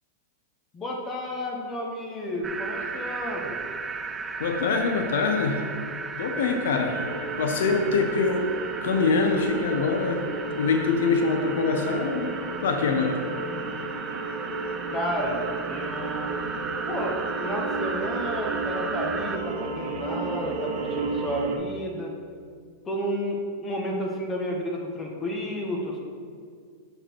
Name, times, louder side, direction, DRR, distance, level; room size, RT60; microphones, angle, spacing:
voice 1, 0.7-3.6 14.9-15.4 15.7-16.3 16.9-22.1 22.9-26.0, equal, 20° left, 0 dB, 1.0 m, -31 dB
sound 1, 2.4-19.4, right 4 dB, 15° right, 0.3 m, -35 dB
voice 2, 4.4-5.7 6.2-7.0 7.4-8.5 8.8-10.3 10.6-12.3 12.6-13.2, left 4 dB, 80° left, 5 dB, 0.7 m, -24 dB
sound 2, 6.9-21.6, right 3 dB, 60° right, 0.9 m, -33 dB
6.4 x 5.0 x 4.4 m, 2.1 s
supercardioid pair, 135°, 0 cm